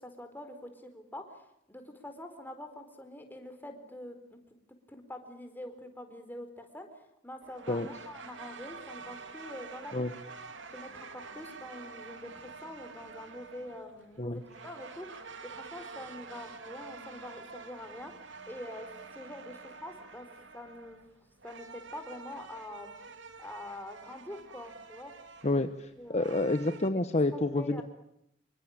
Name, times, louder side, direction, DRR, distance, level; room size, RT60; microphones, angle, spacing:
voice 1, 0.0-4.4 4.9-9.9 10.7-18.1 18.5-18.9 19.1-20.3 20.5-21.0 21.4-22.9 23.4-25.1 25.5-25.7 26.0-26.6 27.0-27.1 27.3-27.8, left 1 dB, 10° left, 6 dB, 4.4 m, -45 dB
sound 1, 7.4-26.9, right 4 dB, 65° right, 2.9 m, -48 dB
voice 2, 25.4-27.8, left 2 dB, 35° left, 9 dB, 1.1 m, -29 dB
27.0 x 24.0 x 8.8 m, 0.76 s
head